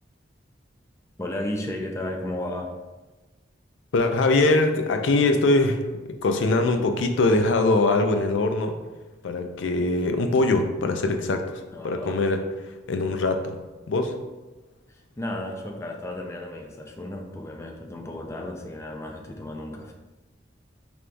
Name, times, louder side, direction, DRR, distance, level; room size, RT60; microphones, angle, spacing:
voice 1, 1.2-2.7 11.7-12.3 14.9-19.9, left 1 dB, 15° left, 2 dB, 0.4 m, -34 dB
voice 2, 3.9-5.8 6.2-8.8 9.2-12.4 12.9-13.6 13.9-14.2, left 2 dB, 90° left, 6 dB, 0.4 m, -22 dB
4.4 x 3.5 x 2.5 m, 1.2 s
head